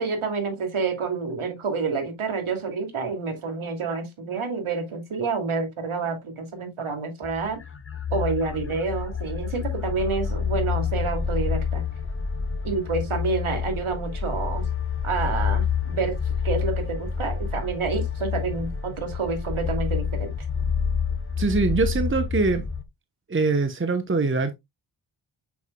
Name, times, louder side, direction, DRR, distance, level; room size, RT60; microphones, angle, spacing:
voice 1, 0.0-7.6 8.1-11.8 12.6-14.7 15.0-16.1 16.4-20.3, right 4 dB, 80° right, 2.6 m, -28 dB
sound 1, 7.2-22.8, left 6 dB, 25° left, 0.9 m, -28 dB
voice 2, 21.4-22.6 23.3-24.5, right 3 dB, 25° right, 1.0 m, -23 dB
7.1 x 6.9 x 2.2 m
wide cardioid pair, 75°, 49 cm